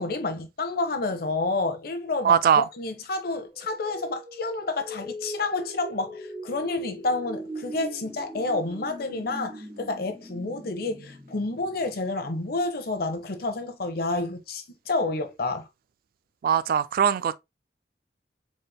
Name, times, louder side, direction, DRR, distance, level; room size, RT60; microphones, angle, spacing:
voice 1, 0.0-15.7, left 2 dB, 60° left, 0.8 m, -29 dB
voice 2, 2.2-2.6 16.4-17.4, right 8 dB, 55° right, 0.3 m, -21 dB
sound 1, 3.5-12.4, equal, 35° right, 1.3 m, -41 dB
4.2 x 3.4 x 2.2 m
head